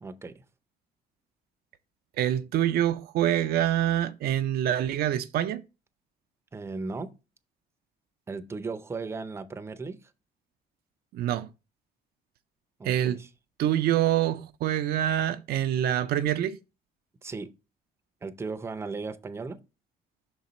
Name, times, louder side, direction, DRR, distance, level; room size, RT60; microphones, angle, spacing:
voice 1, 0.0-0.4 6.5-7.1 8.3-10.1 12.8-13.3 17.2-17.5 18.2-19.6, right 4 dB, 15° right, 0.5 m, -36 dB
voice 2, 2.2-5.6 11.1-11.5 12.8-13.2 13.6-16.6, right 11 dB, 65° right, 0.4 m, -26 dB
5.9 x 4.0 x 4.1 m
cardioid pair, 110°, 17 cm